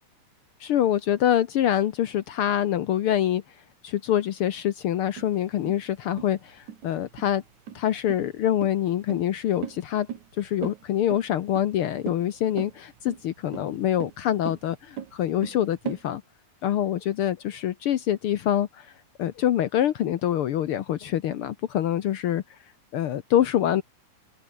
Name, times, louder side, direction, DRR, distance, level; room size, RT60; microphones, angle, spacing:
voice 1, 0.6-3.4 3.8-7.4 7.7-10.1 10.4-16.2 16.6-18.9 19.2-22.4 22.9-23.8, left 11 dB, 70° left, 1.3 m, -25 dB
sound 1, 5.2-16.0, right 9 dB, 75° right, 3.5 m, -39 dB
open air
omnidirectional pair, 3.5 m